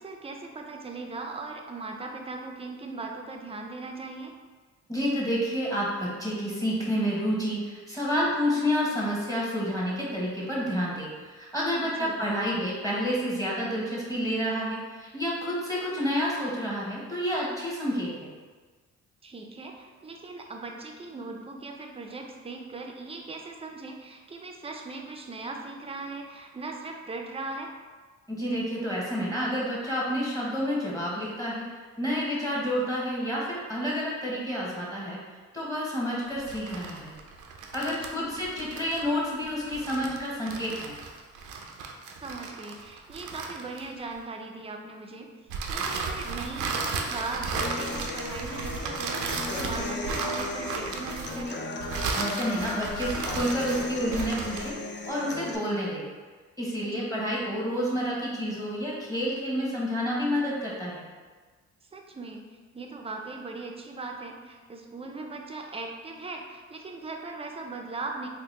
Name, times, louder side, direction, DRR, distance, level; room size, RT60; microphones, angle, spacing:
voice 1, 0.0-4.3 11.8-12.2 19.2-27.7 37.8-38.4 42.2-45.3 45.7-49.2 49.5-51.6 56.8-57.1 61.9-62.4 62.7-68.3, right 3 dB, 20° right, 2 dB, 0.4 m, -39 dB
voice 2, 4.9-18.3 28.3-31.7 32.0-35.2 35.5-37.1 37.7-40.9 52.1-54.8 55.1-56.0 56.6-61.0, equal, 10° left, -5 dB, 1.0 m, -29 dB
sound 1, 36.4-44.2 45.5-54.8, right 4 dB, 80° right, 0.5 m, -35 dB
Human voice / Acoustic guitar, 47.6-55.6, left 2 dB, 40° left, 0.4 m, -36 dB
3.8 x 2.2 x 3.2 m, 1.4 s
cardioid pair, 90°, 30 cm